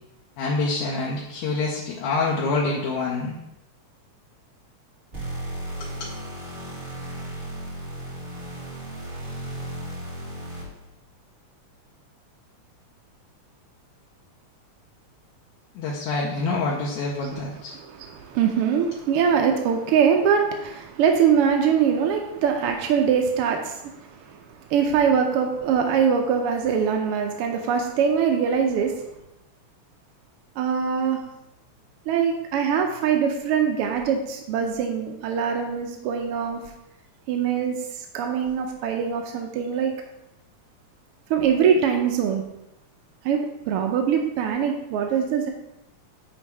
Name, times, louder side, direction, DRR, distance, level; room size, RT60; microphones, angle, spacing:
voice 1, 0.4-3.4 5.8-6.1 15.8-17.7, left 3 dB, 80° left, -3 dB, 2.2 m, -26 dB
sound 1, 5.1-10.9, right 1 dB, 30° right, 2.2 m, -35 dB
voice 2, 17.7-29.1 30.6-31.2 32.1-36.6 37.3-39.9 41.3-42.4 43.2-45.5, right 7 dB, 80° right, 3 dB, 1.3 m, -23 dB
8.8 x 3.6 x 4.6 m, 0.88 s
omnidirectional pair, 3.3 m